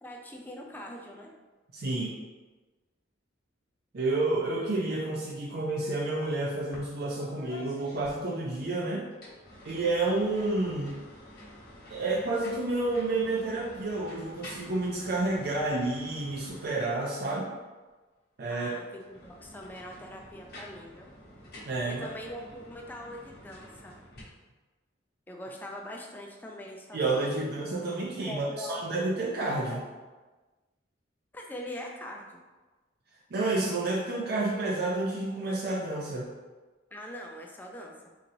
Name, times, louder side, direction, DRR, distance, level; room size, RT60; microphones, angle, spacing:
voice 1, 0.0-1.3 18.5-21.1 21.9-24.0 25.3-27.5 28.3-28.8 29.7-29.8 31.3-32.4 36.9-38.1, equal, 10° left, 0 dB, 0.3 m, -43 dB
voice 2, 1.7-2.2 3.9-9.1 9.6-11.0 11.9-17.5 18.4-18.8 21.6-22.1 26.9-29.8 33.3-36.3, right 2 dB, 55° right, -4 dB, 0.5 m, -30 dB
sound 1, 6.7-6.9 7.1-8.7 9.1-17.2 18.9-24.2, left 1 dB, 55° left, 1.0 m, -49 dB
4.0 x 3.0 x 2.6 m, 1.2 s
head